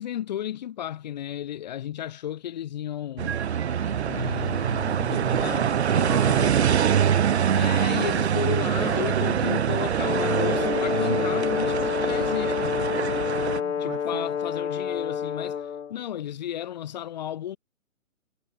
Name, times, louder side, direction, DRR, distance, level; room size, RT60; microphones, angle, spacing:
voice 1, 0.0-3.4 4.0-6.8 7.5-12.8 13.8-15.6 15.9-17.6, left 11 dB, 30° left, 1.9 m, -34 dB
sound 1, 3.2-13.6, right 8 dB, 50° right, 1.6 m, -24 dB
Keyboard (musical), 3.7-10.6, right 4 dB, 5° right, 3.6 m, -43 dB
voice 2, 5.8-7.4 13.1-14.3, right 13 dB, 20° right, 1.4 m, -38 dB
Brass instrument, 9.9-15.9, left 7 dB, 55° left, 2.2 m, -28 dB
hypercardioid pair, 165°, 43 cm